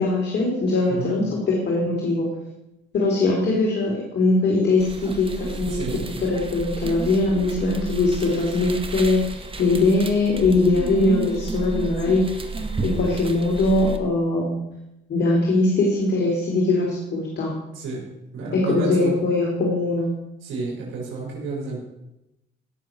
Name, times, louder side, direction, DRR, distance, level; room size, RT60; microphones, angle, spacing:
voice 1, 0.0-2.3 2.9-12.4 12.8-14.6 15.1-17.5 18.5-20.1, left 2 dB, 60° left, -1 dB, 3.5 m, -21 dB
sound 1, 4.8-14.0, right 3 dB, 25° right, 1.6 m, -32 dB
voice 2, 5.7-6.1 17.7-19.1 20.4-21.8, right 3 dB, 80° right, -3 dB, 5.2 m, -31 dB
17.0 x 6.8 x 6.2 m, 0.90 s
cardioid pair, 90°, 20 cm